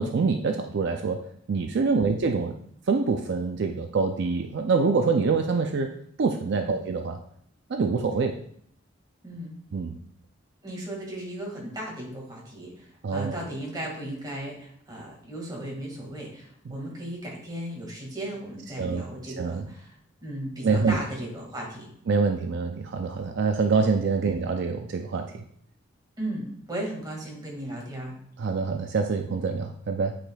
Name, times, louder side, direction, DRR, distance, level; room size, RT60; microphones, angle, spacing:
voice 1, 0.0-2.6 2.9-5.9 6.2-7.2 7.7-8.4 9.7-10.0 13.0-13.4 18.8-19.0 19.4-19.7 20.6-21.0 22.1-25.3 28.4-30.2, right 4 dB, 60° right, 5 dB, 0.4 m, -25 dB
voice 2, 9.2-9.6 10.6-19.9 20.2-21.9 24.2-24.3 26.2-28.2, right 1 dB, 20° right, -2 dB, 1.9 m, -36 dB
8.9 x 5.0 x 2.3 m, 0.68 s
head